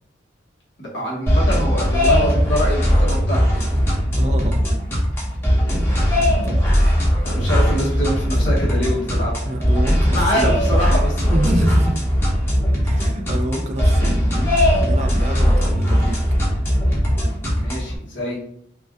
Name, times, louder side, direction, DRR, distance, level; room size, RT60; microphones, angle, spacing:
voice 1, 0.8-3.8 6.1-6.6 7.2-9.5 10.1-11.6 13.0-13.1 17.5-18.4, equal, 70° left, -4 dB, 1.3 m, -25 dB
sound 1, 1.3-18.0, equal, 10° left, 1.0 m, -19 dB
voice 2, 4.2-4.6 6.4-6.6 7.7-7.8 9.5-10.5 11.3-11.9 12.8-16.3, right 1 dB, 35° right, 4 dB, 0.4 m, -27 dB
5.0 x 2.3 x 2.3 m, 0.66 s
head